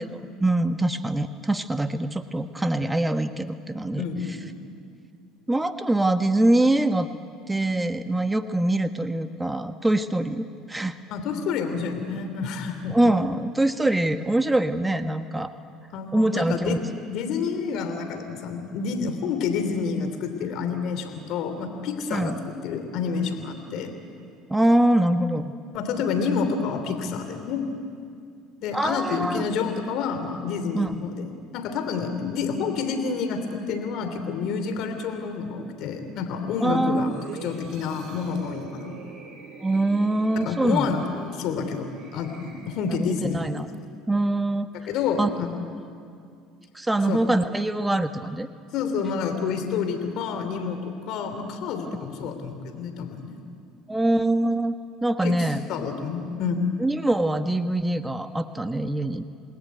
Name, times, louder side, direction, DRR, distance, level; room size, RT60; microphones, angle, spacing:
voice 1, 0.0-4.0 5.5-7.1 7.5-11.0 12.9-15.5 16.1-16.8 22.1-22.3 24.5-25.5 28.7-29.5 30.7-31.0 36.6-37.1 39.6-40.9 42.9-43.7 44.1-44.7 45.2-45.3 46.7-48.5 53.9-54.7 55.0-55.6 56.8-59.2, right 1 dB, 10° right, 8 dB, 1.3 m, -24 dB
voice 2, 4.0-4.5 11.1-12.9 15.9-16.8 17.1-23.9 25.7-27.6 28.6-31.3 31.5-38.9 40.4-43.4 44.8-45.5 47.1-47.2 48.7-50.8 51.1-53.4 55.2-56.7, left 5 dB, 65° left, 7 dB, 3.0 m, -29 dB
sound 1, 37.0-43.1 43.6-43.8, right 6 dB, 65° right, 7.7 m, -45 dB
29.0 x 19.5 x 9.5 m, 2.3 s
supercardioid pair, 80°, 0 cm